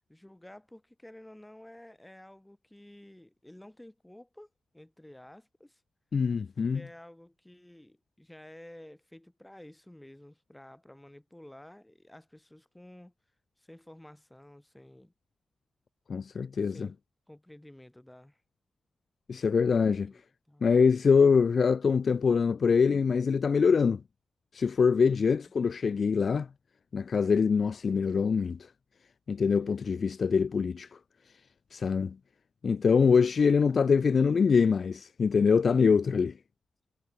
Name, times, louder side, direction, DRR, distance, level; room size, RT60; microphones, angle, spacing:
voice 1, 0.1-4.5 4.7-5.8 6.6-13.1 13.6-15.1 16.6-17.0 17.3-18.4 19.9-20.7 25.0-25.4 32.9-33.2 33.7-33.8, left 1 dB, 10° left, 4.2 m, -52 dB
voice 2, 6.1-6.8 16.1-16.9 19.3-20.1 20.6-24.0 24.5-26.5 26.9-28.6 29.3-30.9 31.7-32.2 32.6-36.3, left 5 dB, 55° left, 0.3 m, -24 dB
cardioid pair, 95°, 0 cm